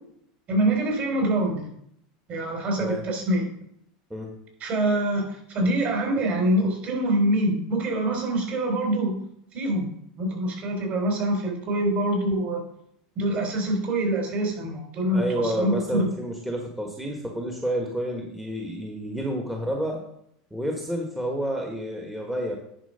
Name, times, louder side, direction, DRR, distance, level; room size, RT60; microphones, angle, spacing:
voice 1, 0.5-1.7 2.3-3.5 4.6-9.2 9.5-9.9 10.2-12.6 13.2-16.1, right 1 dB, 40° right, 1 dB, 3.6 m, -25 dB
voice 2, 15.1-20.0 20.5-22.5, equal, 5° right, 0 dB, 1.4 m, -30 dB
10.5 x 4.5 x 5.6 m, 0.71 s
supercardioid pair, 120°, 4 cm